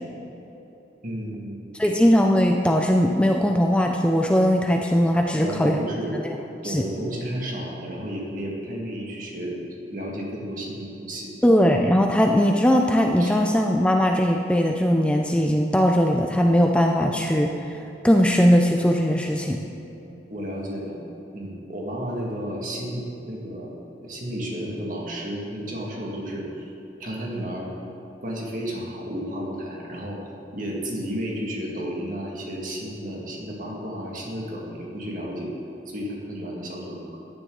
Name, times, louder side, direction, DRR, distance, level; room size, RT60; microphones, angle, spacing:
voice 1, 1.0-1.8 5.4-6.2 6.6-9.6 9.9-11.3 13.2-13.3 20.3-21.0 21.3-23.8 24.0-26.7 27.0-27.7 28.2-30.2 30.5-35.5 35.9-37.2, equal, 45° right, -2 dB, 2.1 m, -32 dB
voice 2, 1.7-5.8 6.1-6.2 6.6-6.8 11.4-19.6, equal, 5° left, 2 dB, 0.4 m, -20 dB
14.5 x 10.0 x 3.9 m, 3.0 s
head